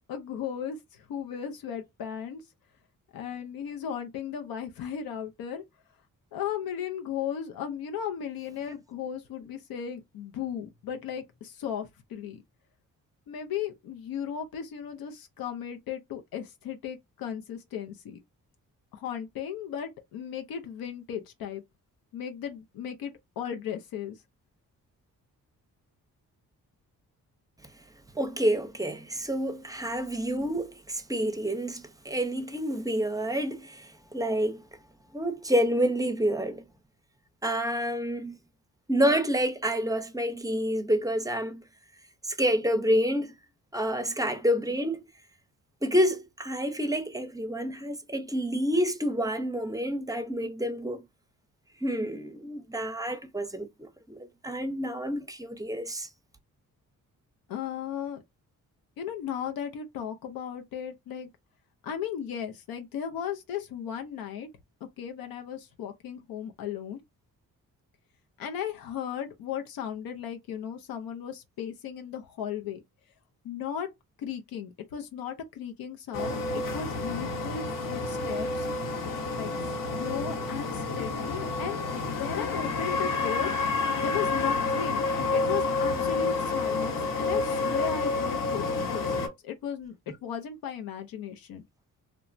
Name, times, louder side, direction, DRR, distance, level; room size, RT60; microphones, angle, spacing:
voice 1, 0.1-2.4 3.1-5.6 6.3-12.4 13.3-18.2 18.9-21.6 22.1-24.2 57.5-58.2 59.0-61.3 61.8-64.5 65.0-67.0 68.4-72.8 73.4-73.9 74.2-78.7 79.0-83.5 84.0-85.0 85.3-89.9 90.2-91.6, left 8 dB, 85° left, 0.6 m, -36 dB
voice 2, 28.1-34.6 35.1-36.6 37.4-38.4 38.9-41.6 42.2-43.4 43.7-45.0 45.8-51.0 51.8-56.1, equal, 10° right, 0.6 m, -28 dB
sound 1, 76.1-89.3, left 3 dB, 65° left, 0.9 m, -29 dB
3.1 x 2.0 x 2.5 m
cardioid pair, 75°, 35 cm